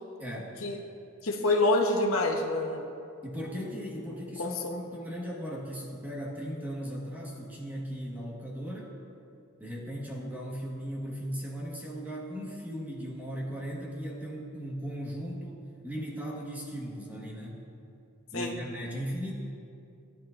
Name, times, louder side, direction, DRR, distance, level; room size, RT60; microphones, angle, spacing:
voice 1, 0.2-0.5 3.2-8.9 9.6-17.6 18.3-19.3, equal, 10° right, -3 dB, 1.5 m, -37 dB
voice 2, 1.2-2.8 4.4-4.8 18.3-18.5, left 2 dB, 75° left, 0 dB, 1.1 m, -27 dB
16.5 x 10.5 x 2.6 m, 2.5 s
head